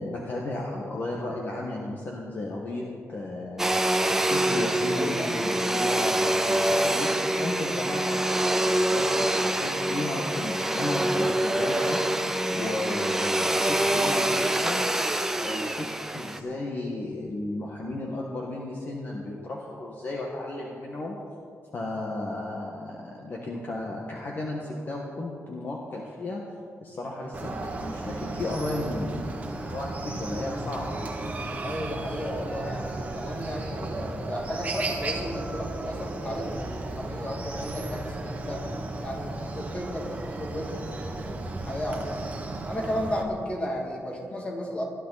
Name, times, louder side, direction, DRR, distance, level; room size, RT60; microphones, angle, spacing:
voice 1, 0.0-3.9 4.3-12.0 12.5-14.9 15.4-21.2 21.7-26.4 26.8-31.0, left 2 dB, 40° left, -2 dB, 1.6 m, -34 dB
Domestic sounds home sounds, 3.6-16.4, right 1 dB, 10° right, 0.7 m, -25 dB
voice 2, 4.9-5.4 6.0-6.4 31.6-38.7 39.0-42.3 42.7-44.8, equal, 25° left, 0 dB, 2.5 m, -34 dB
Chicken rooster, 27.3-43.2, right 2 dB, 30° right, 1.6 m, -34 dB
21.5 x 12.5 x 4.2 m, 2.3 s
wide cardioid pair, 175°, 5 cm